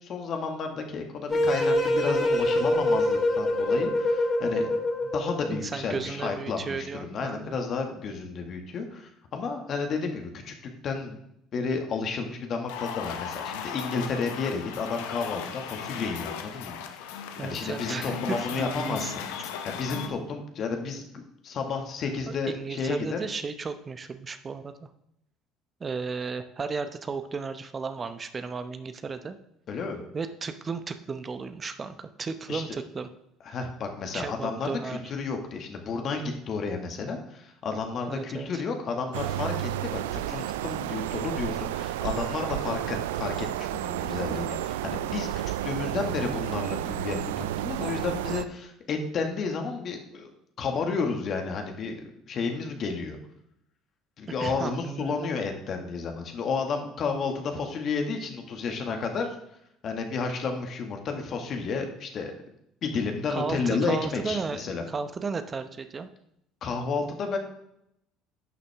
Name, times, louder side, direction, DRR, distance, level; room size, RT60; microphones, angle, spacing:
voice 1, 0.0-4.8 5.1-10.5 10.8-11.2 11.5-23.2 29.7-30.0 32.5-32.6 33.5-45.3 45.6-50.3 50.6-53.2 54.2-59.4 59.8-62.3 62.8-64.8 66.6-67.4, left 4 dB, 50° left, 4 dB, 1.8 m, -32 dB
sound 1, 1.3-5.6, left 1 dB, 30° left, 3.6 m, -25 dB
voice 2, 5.5-7.5 17.4-19.1 22.3-24.9 25.8-29.4 30.1-33.1 34.1-35.0 38.1-38.6 54.4-55.2 63.3-66.1, right 5 dB, 35° right, 10 dB, 0.8 m, -34 dB
sound 2, 12.7-20.1, left 8 dB, 80° left, 0.8 m, -37 dB
sound 3, 39.1-48.4, right 13 dB, 85° right, 0.3 m, -31 dB
11.0 x 6.8 x 3.5 m, 0.77 s
hypercardioid pair, 70°, 0 cm